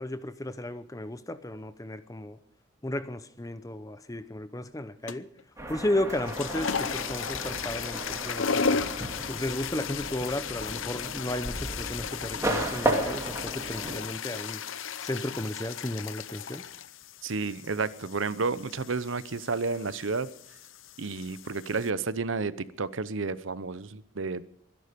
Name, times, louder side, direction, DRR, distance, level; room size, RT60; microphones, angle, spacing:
voice 1, 0.0-2.4 2.8-5.3 5.7-8.7 9.3-14.6 15.0-16.6, left 1 dB, 15° left, 13 dB, 0.7 m, -34 dB
sound 1, 5.1-5.4 6.1-21.9, left 6 dB, 75° left, 0.7 m, -35 dB
sound 2, 5.6-14.0, right 1 dB, 15° right, 2.4 m, -34 dB
voice 2, 17.2-20.3 21.0-24.4, right 4 dB, 75° right, 16 dB, 0.8 m, -31 dB
24.0 x 11.0 x 5.2 m, 0.62 s
head